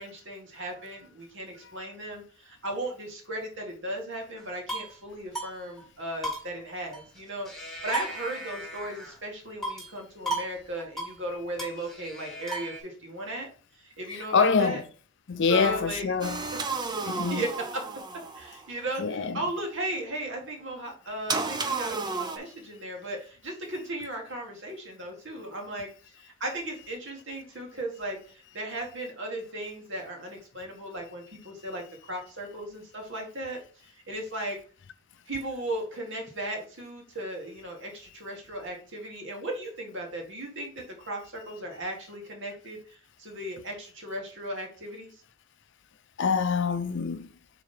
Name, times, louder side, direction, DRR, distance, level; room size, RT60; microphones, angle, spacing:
voice 1, 0.0-13.5 13.7-14.8 15.5-16.1 17.3-17.8 18.3-25.9 26.2-31.8 32.1-33.6 33.9-34.6 35.3-45.2, right 1 dB, 55° right, 1.8 m, -36 dB
sound 1, 4.4-5.0 5.4-5.5 5.8-5.9 6.2-7.2 7.5-9.2 9.6-10.0 10.3-10.5 10.8-11.2 11.6-12.8, right 1 dB, ahead, 1.6 m, -35 dB
voice 2, 14.1-14.8 15.3-16.4 17.0-17.5 19.0-19.4 46.2-47.3, left 5 dB, 55° left, 0.5 m, -25 dB
sound 2, 16.2-18.7 21.3-22.4, right 4 dB, 20° right, 0.5 m, -32 dB
4.7 x 3.8 x 5.5 m
head